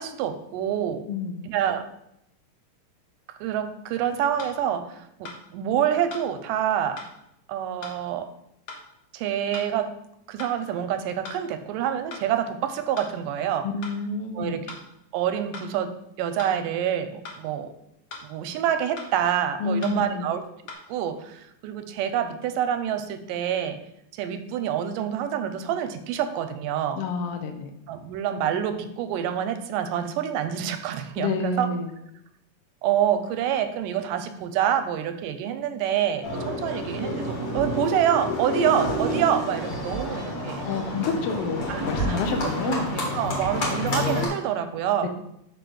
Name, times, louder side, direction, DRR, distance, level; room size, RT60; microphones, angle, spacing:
voice 1, 0.0-1.0 1.4-1.9 3.4-7.0 7.5-8.3 9.1-9.9 10.3-13.7 14.4-14.8 15.1-17.7 18.2-20.4 20.9-23.8 24.1-27.0 27.9-31.7 32.8-40.7 41.7-45.1, right 9 dB, 90° right, 9 dB, 2.2 m, -27 dB
voice 2, 1.1-1.5 13.6-14.6 19.6-20.3 26.9-27.7 31.2-31.9 40.6-43.0 45.0-45.1, left 4 dB, 85° left, 6 dB, 1.3 m, -29 dB
sound 1, 4.4-4.6 5.2-5.4 6.1-6.3 7.0-7.1 7.8-8.0 8.7-8.8 9.5-9.7 10.4-10.6 11.2-11.4 12.1-12.3 13.0-13.1 13.8-14.0 14.7-14.8 15.5-15.7 16.4-16.6 17.2-17.4 18.1-18.3 19.0-19.1 19.8-20.0 20.7-20.8, left 4 dB, 60° left, 1.4 m, -39 dB
Livestock farm animals working animals, 36.2-44.3, left 1 dB, 40° left, 2.1 m, -29 dB
5.1 x 5.0 x 6.2 m, 0.80 s
omnidirectional pair, 3.8 m